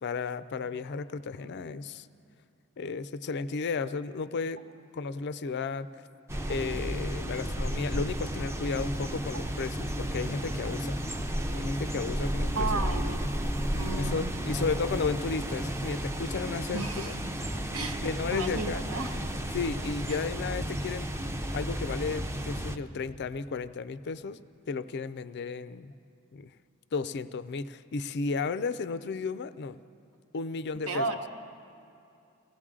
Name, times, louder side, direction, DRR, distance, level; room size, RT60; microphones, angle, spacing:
voice 1, 0.0-2.1 2.8-4.6 4.9-5.9 6.5-11.0 11.5-12.9 14.0-17.1 18.0-18.8 19.5-24.4 24.7-25.9 26.3-26.5 26.9-29.8 30.3-31.1, left 4 dB, 50° left, 14 dB, 0.4 m, -34 dB
sound 1, 6.3-22.8, equal, 10° right, 0.5 m, -33 dB
voice 2, 12.5-13.2 13.7-14.3 16.7-17.2 17.7-18.0 18.3-19.2 20.1-20.2 30.9-31.3, right 3 dB, 70° right, 4 dB, 1.2 m, -33 dB
23.0 x 17.0 x 3.7 m, 2.6 s
head